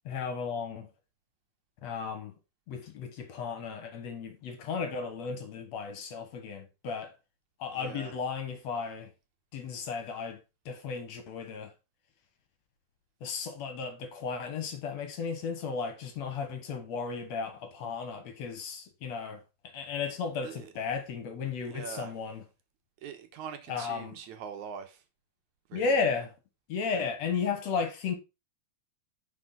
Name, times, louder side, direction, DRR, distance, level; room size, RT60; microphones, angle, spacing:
voice 1, 0.1-0.9 1.8-2.3 2.7-7.1 7.6-9.1 9.5-10.4 10.7-11.7 13.2-22.4 23.7-24.2 25.7-26.3 26.7-28.2, left 5 dB, 60° left, 2.4 m, -34 dB
voice 2, 7.7-8.2 20.4-20.7 21.6-22.1 23.0-25.0 25.7-26.0, right 7 dB, 75° right, 2.4 m, -43 dB
9.9 x 5.4 x 3.8 m
omnidirectional pair, 3.6 m